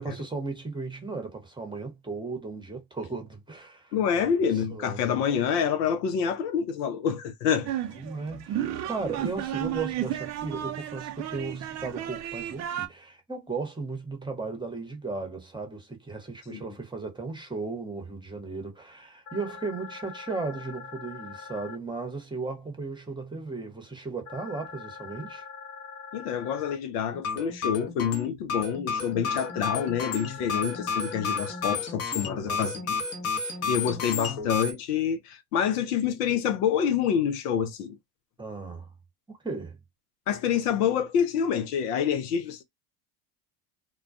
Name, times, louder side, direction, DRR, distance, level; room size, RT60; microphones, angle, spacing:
voice 1, 0.0-5.2 7.9-25.4 32.3-32.7 38.4-38.9 39.3-39.8, right 3 dB, 10° right, 0.9 m, -36 dB
voice 2, 3.9-7.7 16.5-16.6 26.1-32.9 33.2-38.0 40.3-42.6, left 8 dB, 75° left, 0.7 m, -27 dB
sound 1, 7.7-12.9, right 11 dB, 35° right, 0.4 m, -33 dB
sound 2, 19.3-21.8 24.3-26.8 29.3-31.8, left 5 dB, 60° left, 1.0 m, -43 dB
sound 3, 27.1-34.7, left 5 dB, 30° left, 0.8 m, -32 dB
2.2 x 2.2 x 2.5 m
hypercardioid pair, 80°, 47 cm